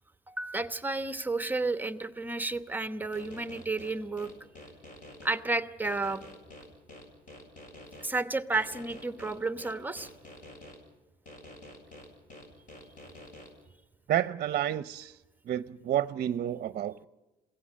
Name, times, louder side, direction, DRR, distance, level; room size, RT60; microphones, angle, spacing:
voice 1, 0.3-4.3 5.2-6.2 8.0-10.1, right 3 dB, 10° right, 11 dB, 1.0 m, -32 dB
sound 1, 3.1-5.3 5.8-8.1 8.5-10.8 11.3-13.5, left 1 dB, 50° left, 7.6 m, -48 dB
voice 2, 14.1-15.2 15.4-17.0, right 11 dB, 55° right, 14 dB, 0.7 m, -30 dB
23.0 x 16.5 x 7.6 m, 1.1 s
cardioid pair, 110°, 17 cm